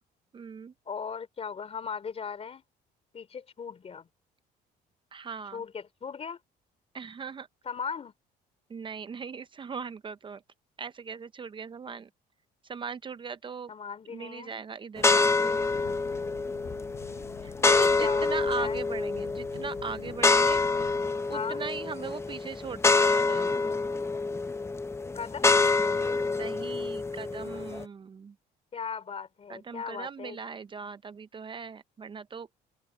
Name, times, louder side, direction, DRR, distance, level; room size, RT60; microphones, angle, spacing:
voice 1, 0.3-0.7 5.1-5.6 6.9-7.5 8.7-10.4 10.8-12.1 12.6-13.7 14.1-15.6 17.4-20.6 21.3-23.6 26.4-28.3 29.5-32.5, right 5 dB, 30° right, 0.6 m, -39 dB
voice 2, 0.8-2.6 3.1-4.1 5.5-6.4 7.6-8.1 13.7-14.5 17.6-18.3 18.6-18.8 21.3-21.6 25.1-25.7 28.7-30.4, left 6 dB, 35° left, 3.3 m, -38 dB
sound 1, 15.0-27.8, left 3 dB, 15° left, 0.8 m, -26 dB
sound 2, 15.5-21.1, left 17 dB, 85° left, 6.7 m, -48 dB
cardioid pair, 110°, 17 cm